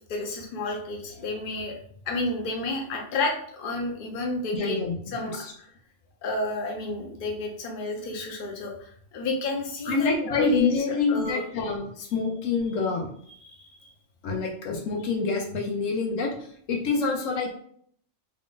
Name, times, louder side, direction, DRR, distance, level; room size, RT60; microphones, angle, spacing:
voice 1, 0.1-1.7 2.1-4.8 5.1-5.7 6.2-11.4 13.4-13.9, left 2 dB, 50° left, 0 dB, 0.8 m, -31 dB
voice 2, 4.5-5.5 9.9-13.1 14.2-16.4 16.7-17.5, left 4 dB, 85° left, 2 dB, 1.1 m, -27 dB
3.5 x 2.4 x 3.7 m, 0.62 s
omnidirectional pair, 1.3 m